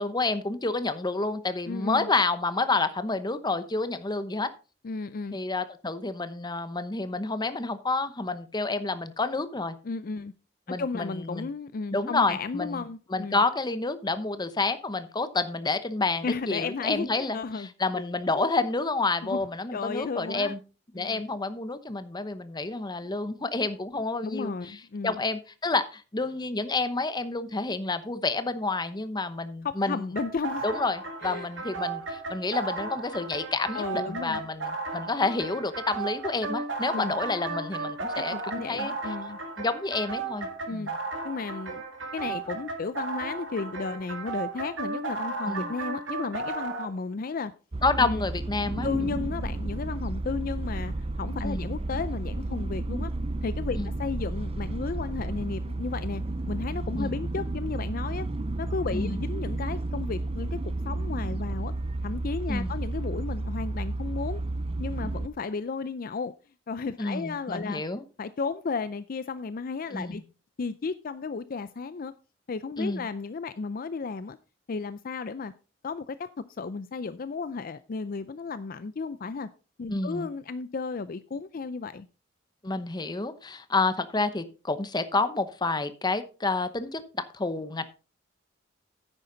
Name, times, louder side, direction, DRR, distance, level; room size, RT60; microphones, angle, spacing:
voice 1, 0.0-4.5 5.3-9.8 10.7-11.5 11.9-20.6 20.9-24.8 25.0-30.1 30.6-38.9 39.6-41.0 45.5-45.7 47.8-48.9 51.4-51.7 53.8-53.9 57.0-57.1 58.9-59.2 62.5-62.8 67.0-68.0 69.9-70.2 72.8-73.1 79.9-80.3 82.6-87.8, left 3 dB, 20° left, 12 dB, 0.9 m, -29 dB
voice 2, 1.7-2.1 4.8-5.4 9.8-10.3 10.7-13.4 16.2-17.7 17.9-18.1 18.3-18.5 19.2-19.4 19.7-20.5 21.0-21.2 24.2-25.2 29.6-30.6 31.2-31.5 33.7-34.4 36.9-37.2 38.3-39.4 40.7-40.9 41.2-41.8 42.1-47.5 48.0-48.3 48.8-53.1 53.4-56.2 56.5-58.3 58.6-60.6 60.9-61.7 62.0-64.4 64.8-66.3 66.7-67.8 68.2-70.2 70.6-72.1 72.5-74.4 74.7-75.5 75.8-79.5 79.8-82.1, left 4 dB, 50° left, 14 dB, 0.4 m, -34 dB
sound 1, 30.2-46.9, right 3 dB, 90° right, 2.2 m, -35 dB
sound 2, 47.7-65.3, right 2 dB, 30° right, 0.5 m, -32 dB
10.0 x 9.0 x 3.9 m, 0.34 s
head